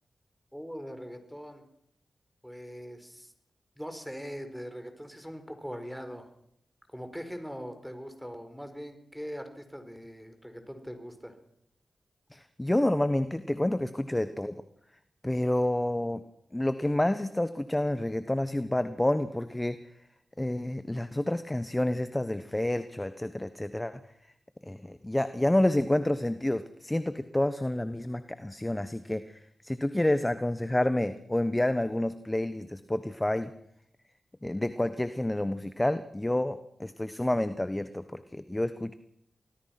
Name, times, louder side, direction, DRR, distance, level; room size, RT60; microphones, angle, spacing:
voice 1, 0.5-1.6 2.4-3.3 3.8-6.3 6.9-11.3, equal, ahead, 7 dB, 4.6 m, -41 dB
voice 2, 12.3-14.6 15.2-16.2 16.5-19.8 20.4-24.0 24.6-33.5 34.4-38.9, left 1 dB, 15° left, 11 dB, 1.2 m, -29 dB
25.0 x 19.0 x 6.0 m, 0.72 s
cardioid pair, 55°, 0 cm